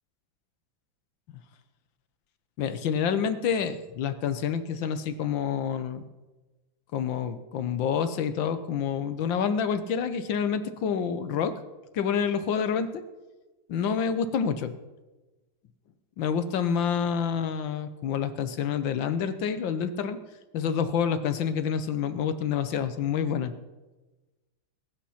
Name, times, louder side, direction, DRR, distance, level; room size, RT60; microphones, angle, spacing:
voice 1, 2.6-6.1 6.9-11.5 11.9-13.0 13.7-14.7 16.2-20.2 20.5-23.5, left 7 dB, 75° left, 11 dB, 1.6 m, -28 dB
21.0 x 9.0 x 5.8 m, 1.2 s
omnidirectional pair, 2.1 m